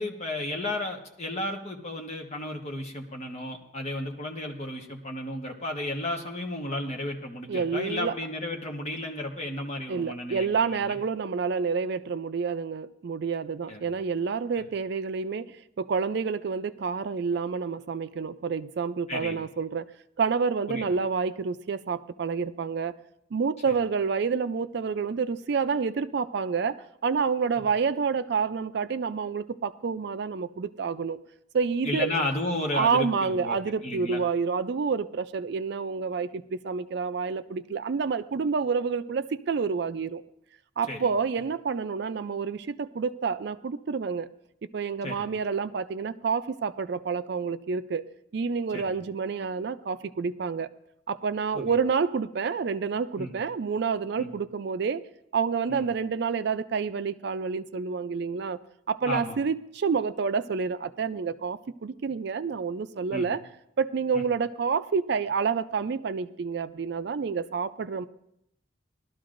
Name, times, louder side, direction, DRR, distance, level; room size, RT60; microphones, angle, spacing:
voice 1, 0.0-11.0 13.7-13.9 19.1-19.4 20.7-20.9 23.7-23.8 31.8-33.6 33.8-34.2 40.9-41.0 45.0-45.3 48.7-49.0 51.5-51.8 53.2-53.3 54.2-54.3 55.7-55.8 59.0-59.4 63.1-63.3 64.1-64.2, left 1 dB, 35° left, 1.3 m, -33 dB
voice 2, 7.5-8.1 9.9-15.5 15.8-19.9 20.2-22.9 23.3-31.2 31.5-32.2 32.7-40.2 40.8-44.3 44.7-48.0 48.3-50.7 51.1-55.0 55.3-58.6 58.9-63.4 63.8-68.1, right 5 dB, 60° right, 0.4 m, -28 dB
19.0 x 12.5 x 2.6 m
head